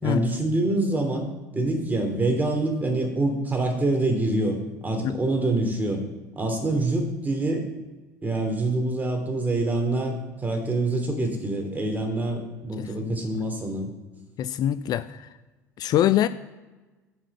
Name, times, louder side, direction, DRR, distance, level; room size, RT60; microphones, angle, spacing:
voice 1, 0.0-1.3 1.5-4.6 4.8-6.0 6.4-7.7 8.2-10.2 10.4-13.9, right 2 dB, 15° right, 2 dB, 3.0 m, -25 dB
voice 2, 12.8-13.2 14.4-15.3 15.8-16.3, left 12 dB, 45° left, 14 dB, 0.5 m, -24 dB
9.9 x 6.0 x 6.8 m, 1.2 s
figure-of-eight pair, 65°, 10 cm